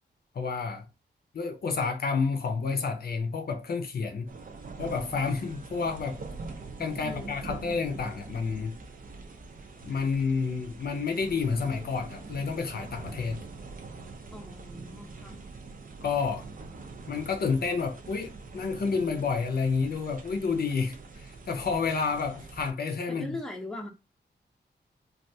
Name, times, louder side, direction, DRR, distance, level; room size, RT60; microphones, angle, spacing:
voice 1, 0.3-0.9 1.3-4.3 4.8-6.2 6.8-8.8 9.8-13.4 16.0-16.5 17.1-23.4, left 5 dB, 60° left, 0.6 m, -30 dB
sound 1, 4.3-22.7, right 3 dB, 50° right, 0.6 m, -44 dB
voice 2, 7.0-7.6 14.3-15.4 23.1-23.9, left 1 dB, 5° left, 0.6 m, -40 dB
3.3 x 2.4 x 2.7 m
wide cardioid pair, 135°, 18 cm